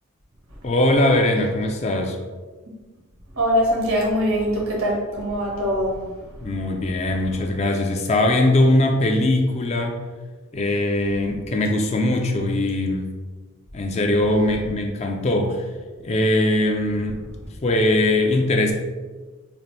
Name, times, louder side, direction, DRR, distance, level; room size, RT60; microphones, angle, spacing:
voice 1, 0.6-2.2 6.4-9.9 10.5-13.1 13.7-15.7 16.0-17.2 17.6-18.7, left 1 dB, 30° left, 3 dB, 0.4 m, -21 dB
voice 2, 3.3-5.9, equal, 85° right, -3 dB, 1.2 m, -22 dB
4.0 x 2.5 x 3.2 m, 1.3 s
head